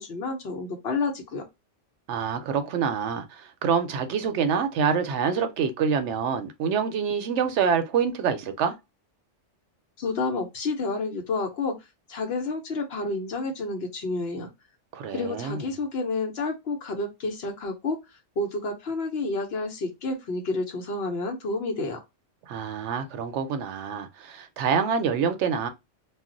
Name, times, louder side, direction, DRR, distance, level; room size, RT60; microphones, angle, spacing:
voice 1, 0.0-1.4 10.0-11.8 12.1-14.5 15.1-18.0 18.4-22.0, left 3 dB, 60° left, 0.9 m, -29 dB
voice 2, 2.1-8.7 14.9-15.7 22.5-25.7, right 6 dB, 75° right, 0.8 m, -26 dB
2.4 x 2.0 x 3.8 m
omnidirectional pair, 1.2 m